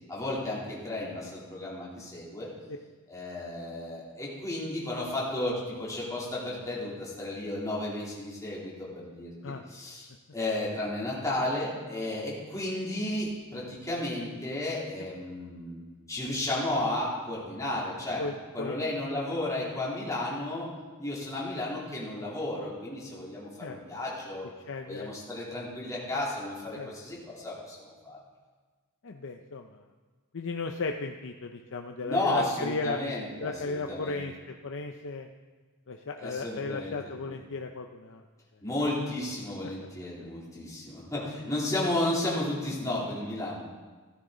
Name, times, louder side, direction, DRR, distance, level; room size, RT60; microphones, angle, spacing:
voice 1, 0.1-2.5 3.1-9.3 9.7-15.8 16.1-18.2 18.5-20.7 21.0-24.5 24.8-28.2 32.0-34.2 36.2-37.0 37.2-37.3 38.6-43.6, left 1 dB, 15° left, -6 dB, 3.2 m, -33 dB
voice 2, 18.2-18.8 23.6-23.8 24.7-25.1 26.1-26.2 26.7-26.9 29.0-29.8 30.3-33.0 33.4-35.3 35.9-38.2, left 3 dB, 60° left, 4 dB, 0.6 m, -35 dB
14.5 x 12.5 x 3.9 m, 1.4 s
head